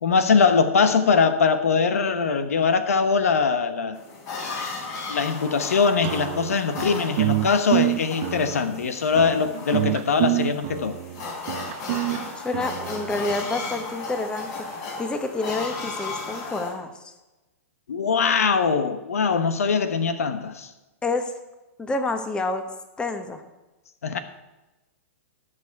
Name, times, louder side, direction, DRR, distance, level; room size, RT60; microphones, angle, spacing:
voice 1, 0.0-4.0 5.1-11.0 17.9-20.7 24.0-24.2, left 5 dB, 90° left, 10 dB, 1.1 m, -22 dB
sound 1, 3.9-16.7, left 3 dB, 40° left, 4.4 m, -35 dB
sound 2, 6.0-13.4, right 17 dB, 50° right, 0.5 m, -27 dB
voice 2, 12.4-14.6 15.0-17.1 21.0-21.3 21.8-22.7 23.0-23.4, left 3 dB, 10° left, 7 dB, 1.1 m, -28 dB
18.5 x 6.2 x 4.8 m, 1.1 s
hypercardioid pair, 135°, 8 cm